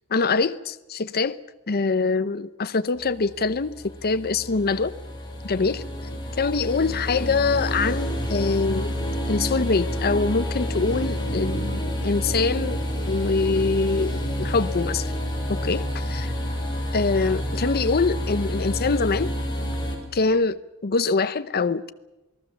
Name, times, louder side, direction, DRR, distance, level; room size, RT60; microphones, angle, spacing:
voice 1, 0.1-1.4 1.7-4.9 5.4-5.8 6.4-8.9 9.3-12.8 13.1-14.1 14.4-15.1 15.5-16.3 16.9-19.3 20.1-21.9, left 4 dB, 45° left, 12 dB, 0.7 m, -24 dB
sound 1, 3.0-20.0, equal, 20° left, 5.8 m, -29 dB
28.0 x 19.0 x 7.1 m, 1.0 s
head